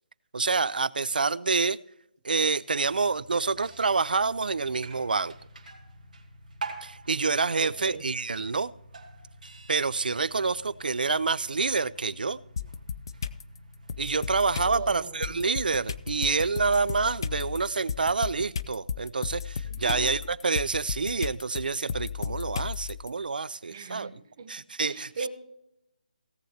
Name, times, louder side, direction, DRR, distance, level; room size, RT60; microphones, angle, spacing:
voice 1, 0.3-1.8 2.2-5.3 6.8-8.7 9.7-12.4 14.0-24.1 24.5-25.1, right 4 dB, 80° right, 19 dB, 0.5 m, -27 dB
sound 1, 2.7-18.2, right 3 dB, 65° right, 2.4 m, -47 dB
voice 2, 7.6-8.1 14.7-15.4 19.7-20.1 23.7-24.5 24.8-25.3, right 5 dB, 25° right, 8 dB, 1.0 m, -39 dB
sound 2, 12.6-13.4 13.9-23.1, left 6 dB, 30° left, 0.3 m, -34 dB
17.5 x 7.9 x 2.8 m, 0.82 s
hypercardioid pair, 175°, 5 cm